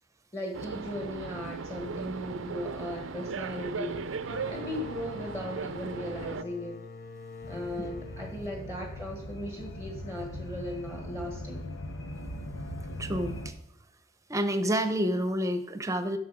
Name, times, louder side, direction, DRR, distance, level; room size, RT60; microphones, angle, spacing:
voice 1, 0.3-6.8 7.5-11.7, left 1 dB, 15° left, 0 dB, 1.5 m, -37 dB
sound 1, 0.5-6.4, right 5 dB, 80° right, 0.5 m, -37 dB
sound 2, 4.2-9.7, left 3 dB, 45° left, 0.5 m, -45 dB
sound 3, 7.4-13.5, left 1 dB, 90° left, 1.0 m, -40 dB
voice 2, 13.0-13.5 14.3-16.2, equal, 15° right, 10 dB, 0.7 m, -29 dB
12.0 x 6.3 x 5.1 m, 0.78 s
head